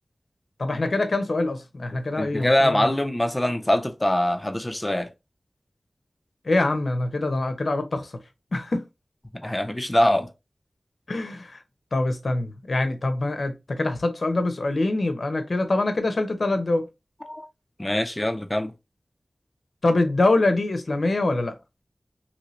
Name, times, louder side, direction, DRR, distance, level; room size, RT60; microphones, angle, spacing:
voice 1, 0.6-2.9 6.5-8.1 8.5-8.8 11.1-11.6 11.9-16.9 19.8-21.5, left 2 dB, 70° left, 0.6 m, -24 dB
voice 2, 2.2-5.1 9.3-10.3 17.3-17.5 17.8-18.7, left 1 dB, 20° left, 0.6 m, -23 dB
3.0 x 2.7 x 3.0 m
wide cardioid pair, 45°, 0 cm